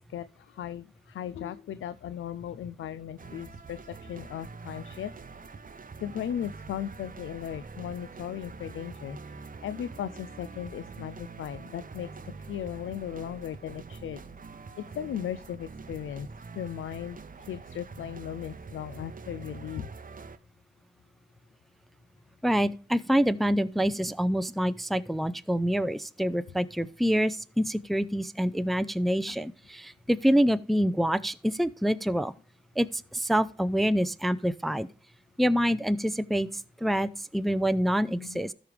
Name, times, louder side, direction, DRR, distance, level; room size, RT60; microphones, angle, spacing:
voice 1, 0.1-5.1 6.0-12.1 12.5-14.2 14.8-16.3 16.6-17.2 17.5-19.9 29.3-29.4 38.2-38.4, left 10 dB, 85° left, 0.4 m, -37 dB
sound 1, 3.2-20.4, right 4 dB, 45° right, 0.7 m, -45 dB
voice 2, 22.4-32.3 32.8-34.9 35.4-36.5 36.8-38.5, equal, ahead, 0.5 m, -26 dB
13.5 x 5.1 x 3.3 m
cardioid pair, 45°, 20 cm